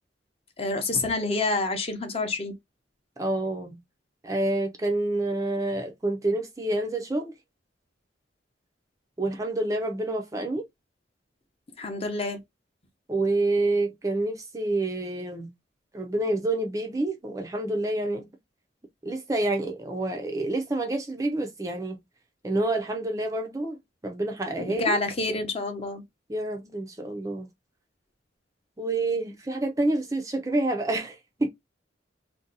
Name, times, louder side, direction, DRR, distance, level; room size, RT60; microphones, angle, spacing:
voice 1, 0.6-2.5 11.8-12.4 24.6-26.0, left 2 dB, 30° left, 0.7 m, -28 dB
voice 2, 3.2-3.8 4.2-7.3 9.2-10.6 13.1-15.5 15.9-18.3 19.0-22.0 22.4-25.0 26.3-27.5 28.8-31.5, right 2 dB, 20° right, 0.5 m, -28 dB
2.6 x 2.2 x 3.8 m
head